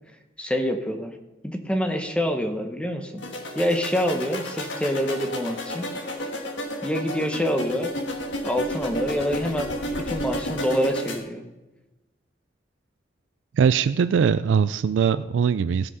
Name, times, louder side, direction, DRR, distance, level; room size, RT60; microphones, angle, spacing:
voice 1, 0.4-1.2 1.4-3.2 3.5-6.2 6.8-7.9 8.4-9.7 10.0-11.4, equal, 5° left, 5 dB, 1.0 m, -26 dB
sound 1, 3.2-11.2, left 1 dB, 90° left, 1.6 m, -32 dB
voice 2, 13.5-15.9, right 6 dB, 85° right, 13 dB, 0.3 m, -21 dB
16.0 x 5.7 x 5.5 m, 1.0 s
head